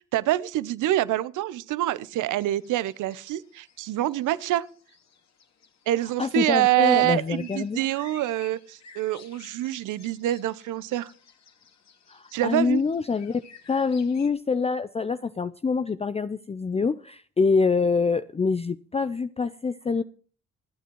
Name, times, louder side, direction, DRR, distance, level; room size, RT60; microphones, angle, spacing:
voice 1, 0.1-4.6 5.9-11.1 12.3-12.8, right 15 dB, 70° right, 0.8 m, -26 dB
sound 1, 2.4-14.3, left 6 dB, 55° left, 2.3 m, -53 dB
voice 2, 6.2-7.8 12.1-13.4 13.7-20.0, left 4 dB, 20° left, 0.5 m, -25 dB
27.0 x 9.1 x 3.1 m
hypercardioid pair, 50°, 32 cm